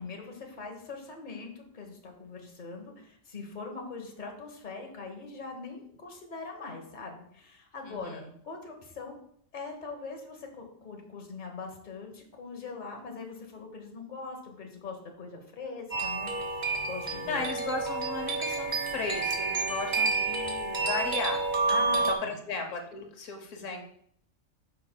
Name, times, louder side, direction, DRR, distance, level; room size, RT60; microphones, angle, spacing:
voice 1, 0.0-9.2 9.5-17.4 21.7-22.3, left 4 dB, 40° left, 2 dB, 1.2 m, -42 dB
voice 2, 7.8-8.3 17.0-21.4 22.1-23.8, left 3 dB, 85° left, 4 dB, 1.2 m, -35 dB
sound 1, 15.9-22.1, right 3 dB, 40° right, 0.9 m, -29 dB
9.2 x 5.8 x 2.2 m, 0.65 s
omnidirectional pair, 1.3 m